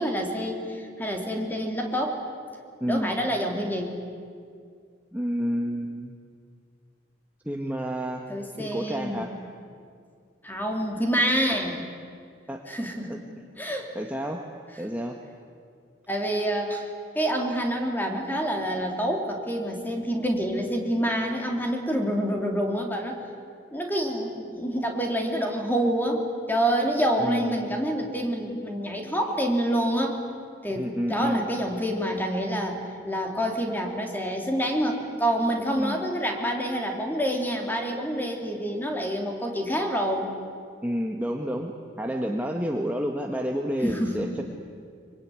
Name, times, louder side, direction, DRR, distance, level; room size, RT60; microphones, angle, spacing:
voice 1, 0.0-2.2 2.9-4.0 8.3-9.3 10.4-11.8 12.7-13.2 13.6-13.9 16.1-16.9 17.1-23.2 23.7-30.2 30.6-40.3 43.8-44.3, equal, 10° left, 2 dB, 3.4 m, -27 dB
voice 2, 2.8-3.1 5.1-6.1 7.4-8.3 8.6-9.4 12.5-12.6 13.1-13.2 13.9-14.4 14.8-15.2 27.2-27.6 30.8-31.5 35.8-36.0 40.8-41.7 42.0-44.4, equal, 10° right, 1 dB, 1.5 m, -29 dB
25.0 x 24.5 x 9.7 m, 2.2 s
head